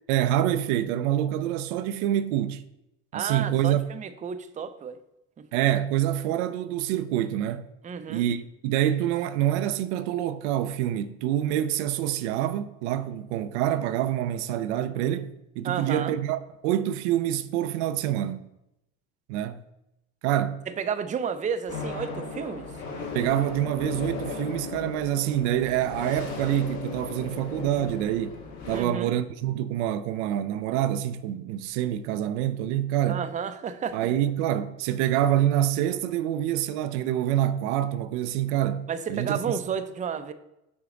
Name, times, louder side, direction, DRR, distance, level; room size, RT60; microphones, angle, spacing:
voice 1, 0.1-2.6 3.1-3.8 5.5-7.7 8.1-15.3 15.6-18.5 19.3-19.6 20.2-20.6 23.1-28.4 28.7-33.2 33.9-39.4, right 12 dB, 75° right, 0.5 m, -26 dB
voice 2, 3.1-5.0 5.4-5.5 7.8-8.3 15.6-16.2 20.8-22.7 28.7-29.1 33.1-34.0 38.9-40.3, right 7 dB, 20° right, 0.5 m, -31 dB
sound 1, 21.7-28.8, left 4 dB, 55° left, 2.3 m, -36 dB
6.0 x 4.9 x 3.8 m
hypercardioid pair, 75°, 34 cm